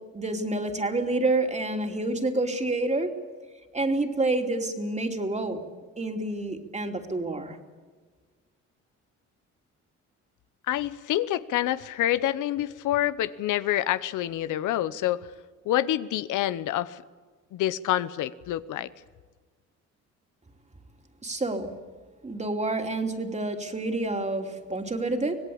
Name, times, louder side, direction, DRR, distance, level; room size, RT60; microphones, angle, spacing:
voice 1, 0.1-3.1 3.7-5.6 6.0-7.6 21.2-21.7 22.2-25.4, right 2 dB, 20° right, 4 dB, 3.0 m, -28 dB
voice 2, 10.7-15.3 15.6-17.0 17.5-18.9, left 13 dB, 85° left, 14 dB, 0.9 m, -27 dB
25.5 x 18.0 x 8.7 m, 1.5 s
cardioid pair, 90°, 30 cm